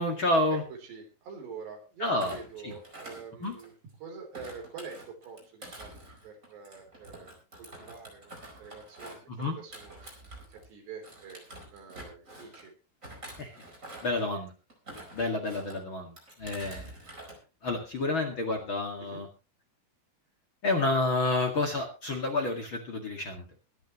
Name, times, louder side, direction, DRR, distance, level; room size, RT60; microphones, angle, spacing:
voice 1, 0.0-0.6 2.0-2.4 2.6-2.7 3.4-3.5 9.3-9.6 13.4-13.6 14.0-14.5 15.1-17.1 17.6-19.3 20.6-23.5, left 2 dB, 40° left, 3 dB, 2.2 m, -29 dB
voice 2, 0.8-3.7 4.0-7.3 7.6-9.2 9.6-12.7 19.0-19.2, right 5 dB, 85° right, 3 dB, 5.9 m, -46 dB
Thump thud, 2.1-3.9 4.3-10.7 11.0-12.6 13.0-14.2 14.7-15.8 16.2-17.4 17.7-18.0, right 1 dB, 20° right, 4.8 m, -47 dB
23.5 x 10.5 x 3.1 m, 0.32 s
omnidirectional pair, 4.7 m